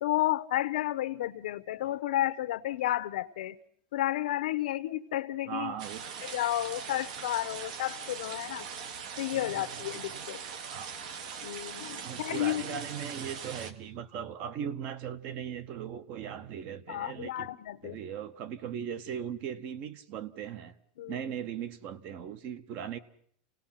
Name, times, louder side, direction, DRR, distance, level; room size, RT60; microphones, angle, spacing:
voice 1, 0.0-3.6 3.9-5.7 6.2-8.7 9.2-10.4 11.4-12.8 16.9-18.0 21.0-21.3, left 14 dB, 90° left, 0.9 m, -32 dB
voice 2, 5.5-6.0 9.3-10.3 10.7-10.9 12.0-17.5 17.8-20.7 21.1-23.0, right 8 dB, 35° right, 0.9 m, -39 dB
sound 1, 5.8-13.7, right 6 dB, 60° right, 1.5 m, -41 dB
28.5 x 18.0 x 5.8 m
supercardioid pair, 180°, 4 cm